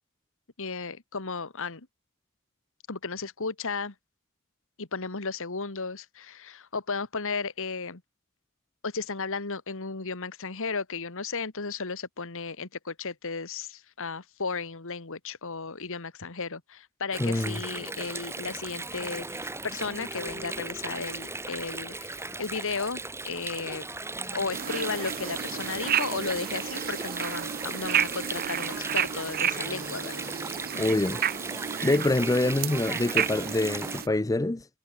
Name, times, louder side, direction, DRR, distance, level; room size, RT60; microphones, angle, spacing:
voice 1, 0.6-1.9 2.9-3.9 4.8-8.0 8.8-23.9 24.3-30.3, left 4 dB, 65° left, 1.9 m, -34 dB
Water, 17.1-34.0, right 2 dB, 10° right, 1.9 m, -37 dB
voice 2, 17.2-17.6 30.8-31.2 31.8-34.7, left 2 dB, 15° left, 0.5 m, -25 dB
sound 1, 18.4-29.3, right 3 dB, 70° right, 4.6 m, -57 dB
sound 2, 24.5-34.1, right 9 dB, 45° right, 0.5 m, -31 dB
head